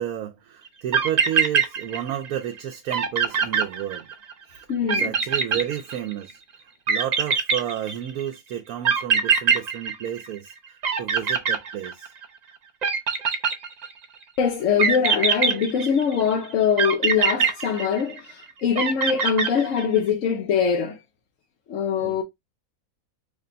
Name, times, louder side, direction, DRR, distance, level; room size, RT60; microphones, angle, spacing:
voice 1, 0.0-4.1 4.5-6.4 6.9-12.1 22.0-22.2, right 10 dB, 90° right, 1.1 m, -31 dB
sound 1, 0.7-0.8 0.9-2.3 2.6-2.7 2.9-4.3 4.9-6.3 6.9-8.2 8.8-10.5 10.8-12.2 12.8-14.0 14.8-16.2 16.8-18.3 18.8-20.0, right 6 dB, 75° right, 0.4 m, -23 dB
voice 2, 4.7-5.1 14.4-21.0 21.7-22.2, left 7 dB, 65° left, 1.0 m, -23 dB
3.4 x 2.2 x 3.8 m
omnidirectional pair, 1.5 m